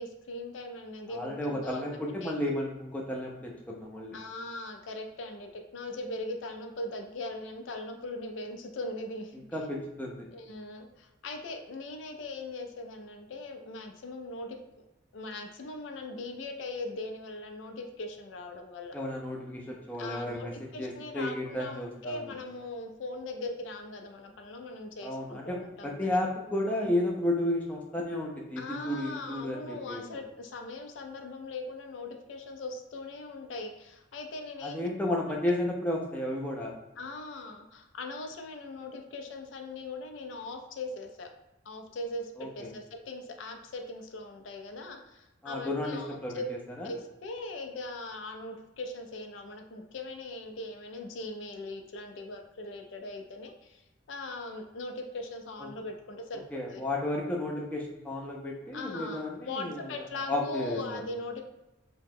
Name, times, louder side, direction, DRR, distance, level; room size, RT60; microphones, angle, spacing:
voice 1, 0.0-2.3 4.1-9.4 10.3-14.6 15.1-19.0 20.0-26.2 28.6-34.9 37.0-41.3 41.7-46.5 46.8-56.4 56.7-56.8 58.7-61.4, left 2 dB, 70° left, 4 dB, 0.4 m, -40 dB
voice 2, 1.1-4.2 9.5-10.3 18.9-20.5 20.8-22.3 25.0-30.0 34.6-36.7 42.4-42.7 45.4-46.9 55.6-55.7 56.5-59.8 60.3-61.0, left 1 dB, 5° left, -2 dB, 0.4 m, -33 dB
2.8 x 2.1 x 3.5 m, 1.0 s
head